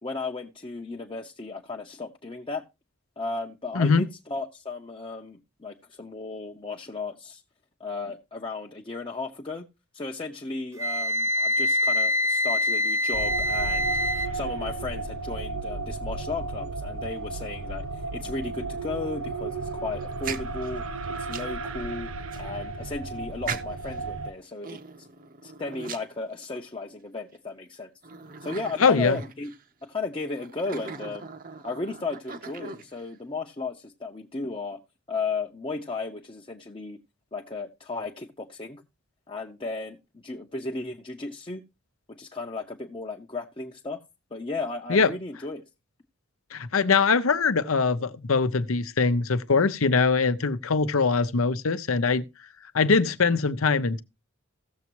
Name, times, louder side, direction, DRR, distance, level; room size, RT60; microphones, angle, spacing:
voice 1, 0.0-2.6 3.2-7.4 7.8-9.7 9.9-13.9 14.3-25.1 25.4-27.9 28.4-29.5 29.8-31.3 31.6-34.8 35.1-37.0 37.3-38.8 39.3-41.6 42.1-44.0 44.3-45.6, left 3 dB, 25° left, 0.7 m, -35 dB
voice 2, 3.7-4.1 28.8-29.2 44.9-45.1 46.5-52.2 52.7-54.0, left 4 dB, 80° left, 0.7 m, -22 dB
Wind instrument woodwind instrument, 10.8-14.3, left 1 dB, 15° right, 0.5 m, -25 dB
sound 1, 13.1-24.3, right 3 dB, 80° right, 0.7 m, -34 dB
sound 2, 20.0-21.6 22.3-22.4 23.4-24.0 24.6-26.7 27.3-27.4 28.0-29.6 30.4-33.1, right 5 dB, 40° right, 0.8 m, -39 dB
16.5 x 7.0 x 3.0 m
head